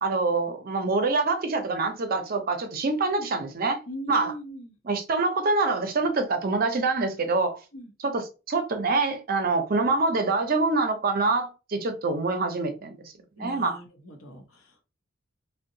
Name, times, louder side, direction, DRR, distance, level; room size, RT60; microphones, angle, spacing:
voice 1, 0.0-3.8 4.1-4.3 4.8-7.6 8.0-13.0 13.4-13.8, right 3 dB, 45° right, 0.5 m, -25 dB
voice 2, 3.9-4.7 7.7-7.9 13.4-14.8, right 1 dB, 80° left, 0.8 m, -40 dB
2.7 x 2.1 x 2.6 m
head